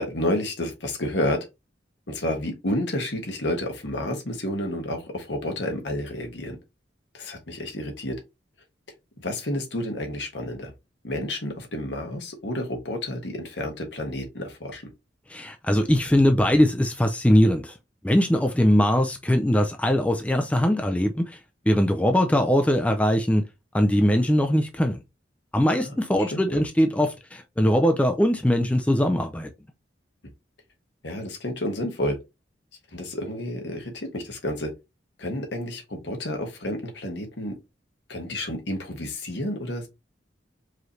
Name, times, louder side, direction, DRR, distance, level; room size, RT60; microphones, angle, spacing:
voice 1, 0.0-1.5 2.1-6.6 7.1-8.2 9.2-10.7 11.0-14.8 25.8-26.6 31.0-32.2 32.9-34.7 35.2-37.6 38.1-39.9, left 1 dB, 70° left, 1.3 m, -30 dB
voice 2, 15.3-17.7 18.0-21.4 21.7-23.4 23.7-25.0 25.5-29.5, equal, 5° left, 0.4 m, -21 dB
4.8 x 2.8 x 3.1 m
head